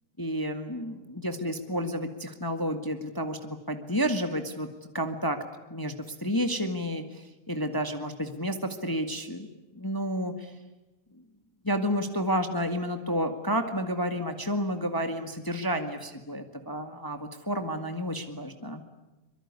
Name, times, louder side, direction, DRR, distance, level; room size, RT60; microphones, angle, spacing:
voice 1, 0.2-4.7 4.9-5.4 5.7-5.9 6.2-9.5 9.7-10.5 11.6-18.8, equal, 20° left, 7 dB, 0.5 m, -30 dB
24.5 x 23.5 x 9.7 m, 1.1 s
omnidirectional pair, 4.0 m